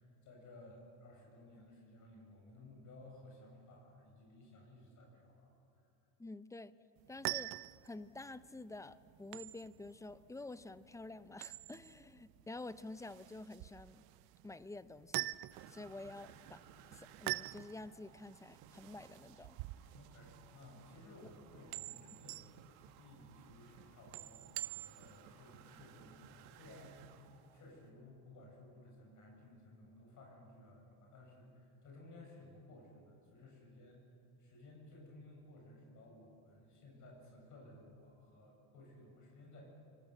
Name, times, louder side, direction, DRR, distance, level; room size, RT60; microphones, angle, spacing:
voice 1, 0.0-5.5 19.9-22.5 23.0-27.2 27.5-34.0 34.4-39.7, left 1 dB, 45° left, -1 dB, 7.5 m, -57 dB
voice 2, 6.2-6.7 7.1-7.5 7.8-14.0 14.4-15.3 15.7-16.6 16.9-19.6 21.2-21.3, left 2 dB, 10° left, 14 dB, 0.6 m, -49 dB
sound 1, 7.0-25.2, right 19 dB, 60° right, 0.7 m, -46 dB
sound 2, 15.5-27.9, right 8 dB, 90° right, 2.0 m, -60 dB
24.5 x 24.5 x 7.5 m, 2.8 s
cardioid pair, 125°, 41 cm